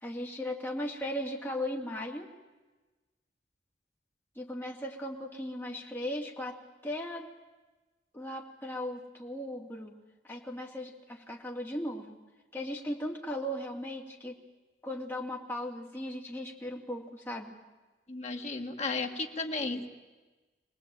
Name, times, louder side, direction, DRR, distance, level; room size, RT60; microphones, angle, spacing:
voice 1, 0.0-2.3 4.4-7.3 8.1-10.0 10.2-12.2 12.5-14.4 14.8-17.5, left 1 dB, 15° left, -1 dB, 2.7 m, -37 dB
voice 2, 18.1-19.9, left 3 dB, 40° left, 4 dB, 1.9 m, -34 dB
24.5 x 19.0 x 9.1 m, 1.2 s
head